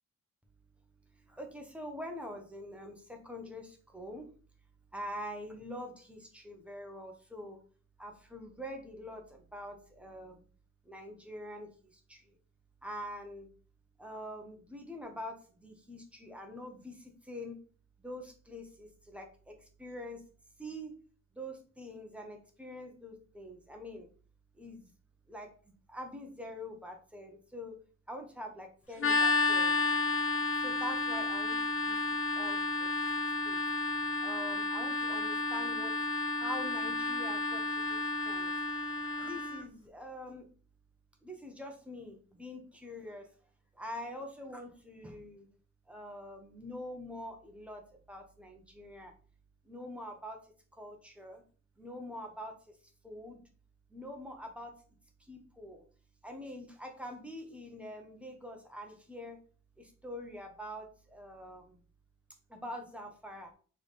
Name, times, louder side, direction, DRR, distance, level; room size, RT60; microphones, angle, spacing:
voice 1, 1.1-4.3 4.9-7.6 8.0-10.4 10.8-12.4 12.8-13.5 14.0-17.6 18.0-20.2 20.6-20.9 21.3-24.1 24.5-24.9 25.3-25.5 25.9-27.8 28.1-29.8 30.3-32.9 33.4-33.6 34.2-36.0 36.4-37.6 37.9-38.0 38.2-38.5 39.1-40.5 41.2-43.3 43.7-45.5 45.9-49.1 49.6-51.4 51.8-52.6 53.0-53.4 53.9-54.8 55.2-55.8 56.2-59.4 59.8-61.8 62.5-63.5, left 1 dB, 5° right, 2 dB, 0.8 m, -45 dB
sound 1, 29.0-39.6, left 3 dB, 45° left, 0.6 m, -31 dB
3.4 x 3.3 x 4.1 m, 0.41 s
wide cardioid pair, 155°, 29 cm